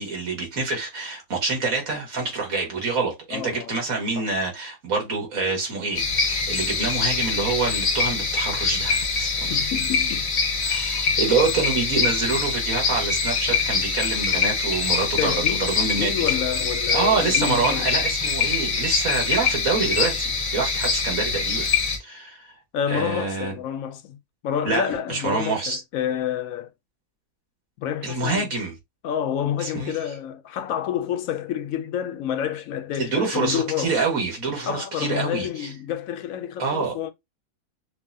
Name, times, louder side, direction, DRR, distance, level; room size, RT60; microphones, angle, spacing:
voice 1, 0.0-9.6 10.6-16.4 16.9-21.7 22.0-22.5 22.9-23.5 24.6-25.8 28.0-28.7 29.6-29.9 33.0-35.7 36.6-36.9, right 4 dB, 65° right, 2.1 m, -26 dB
voice 2, 3.3-3.8 4.2-4.3 9.5-10.3 15.2-17.9 22.7-24.2 24.4-26.7 27.8-28.5 29.0-33.9 34.7-37.1, left 9 dB, 70° left, 1.0 m, -29 dB
sound 1, 6.0-22.0, left 4 dB, 40° left, 0.8 m, -24 dB
5.8 x 2.2 x 2.7 m
omnidirectional pair, 1.6 m